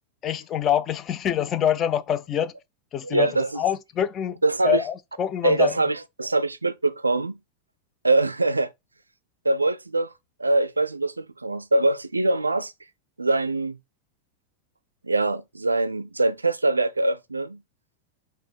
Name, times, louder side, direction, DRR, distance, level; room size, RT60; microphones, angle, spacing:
voice 1, 0.2-2.5 2.9-5.8, left 9 dB, 30° left, 0.4 m, -25 dB
voice 2, 3.0-3.6 4.4-4.8 5.4-7.4 8.0-8.7 9.5-10.1 10.4-12.7 13.2-13.8 15.0-17.6, right 2 dB, 80° right, 0.3 m, -23 dB
4.1 x 2.1 x 4.4 m
figure-of-eight pair, 90°, 0 cm